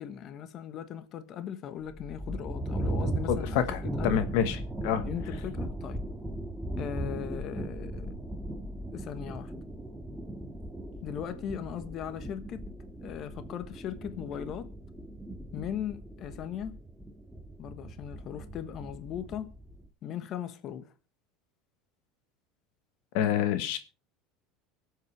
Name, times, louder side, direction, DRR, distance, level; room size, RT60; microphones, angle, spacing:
voice 1, 0.0-4.2 5.0-6.0 6.8-8.1 8.9-9.5 11.0-12.6 13.0-14.7 15.5-16.8 17.6-19.5 20.0-20.9, left 9 dB, 50° left, 1.3 m, -38 dB
sound 1, 1.8-19.9, right 1 dB, 5° right, 1.9 m, -38 dB
voice 2, 3.3-4.6 4.8-5.0 23.1-23.8, left 9 dB, 70° left, 1.3 m, -27 dB
24.5 x 8.2 x 3.3 m
supercardioid pair, 105°, 0 cm